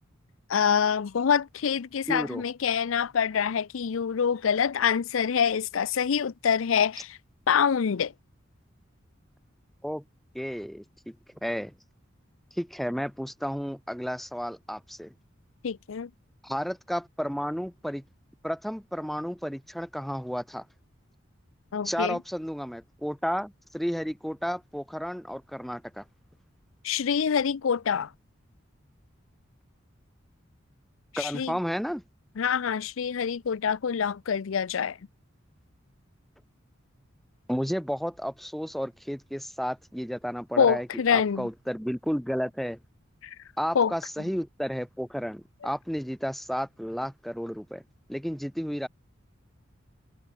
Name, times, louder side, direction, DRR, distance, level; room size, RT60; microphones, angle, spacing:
voice 1, 0.5-7.2 7.5-8.1 15.6-16.1 21.7-22.2 26.8-28.1 31.1-31.6 32.4-35.0 40.6-41.5 43.2-43.3 43.7-43.9, left 7 dB, 80° left, 0.5 m, -26 dB
voice 2, 2.1-2.4 9.8-10.0 10.3-11.2 11.4-11.7 12.5-15.1 16.4-18.0 18.4-20.7 21.8-26.0 31.2-32.0 37.5-42.8 43.6-47.8 48.1-48.9, equal, ahead, 2.3 m, -32 dB
head